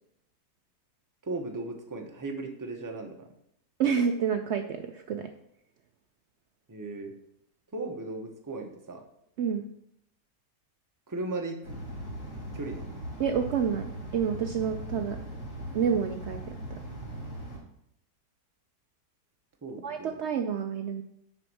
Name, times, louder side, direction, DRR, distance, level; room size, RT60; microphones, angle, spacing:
voice 1, 1.2-3.3 6.7-7.1 7.7-9.0 11.1-11.8 12.5-12.9 19.6-20.2, right 2 dB, 20° right, 3 dB, 0.6 m, -37 dB
voice 2, 3.8-5.3 9.4-9.7 13.2-15.2 15.7-16.8 19.8-21.0, right 7 dB, 85° right, 6 dB, 0.6 m, -29 dB
sound 1, 11.6-17.6, right 1 dB, 50° left, 2.3 m, -39 dB
6.6 x 5.2 x 6.1 m, 0.74 s
omnidirectional pair, 1.8 m